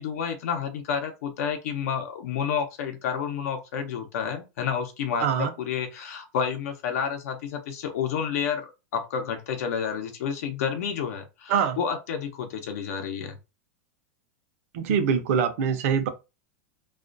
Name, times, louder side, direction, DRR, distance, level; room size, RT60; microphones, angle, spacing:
voice 1, 0.0-13.4, left 7 dB, 70° left, 0.7 m, -30 dB
voice 2, 5.2-5.5 11.5-11.8 14.7-16.1, right 7 dB, 65° right, 0.6 m, -24 dB
2.4 x 2.2 x 2.6 m
supercardioid pair, 135°, 8 cm